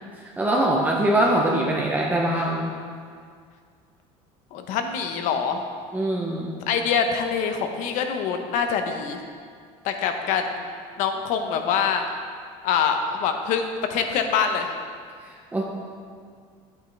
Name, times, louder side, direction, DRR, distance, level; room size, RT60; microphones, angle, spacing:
voice 1, 0.2-2.7 5.9-6.5 15.2-15.6, right 1 dB, 10° right, -2 dB, 0.8 m, -23 dB
voice 2, 4.5-5.6 6.7-9.2 9.8-10.6 11.0-12.1 12.6-14.7, left 6 dB, 60° left, 5 dB, 1.0 m, -25 dB
10.5 x 8.3 x 3.4 m, 2.1 s
cardioid pair, 130°, 14 cm